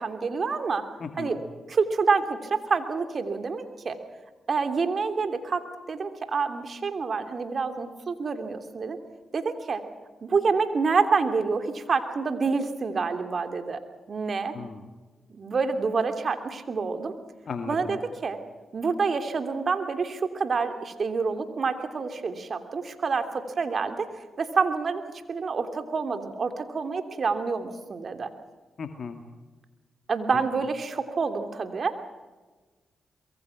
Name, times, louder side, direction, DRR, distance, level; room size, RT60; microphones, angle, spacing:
voice 1, 0.0-0.8 1.2-1.4 1.7-4.0 4.5-9.0 9.3-9.8 10.2-13.8 14.1-14.5 15.3-17.1 17.7-18.4 18.7-24.1 24.4-25.0 25.3-28.3 30.1-31.9, right 4 dB, 55° right, 8 dB, 2.9 m, -27 dB
voice 2, 1.0-1.4 14.5-14.8 17.5-18.0 28.8-29.2, left 5 dB, 60° left, 6 dB, 2.0 m, -36 dB
24.0 x 22.5 x 6.0 m, 1.3 s
supercardioid pair, 45°, 0 cm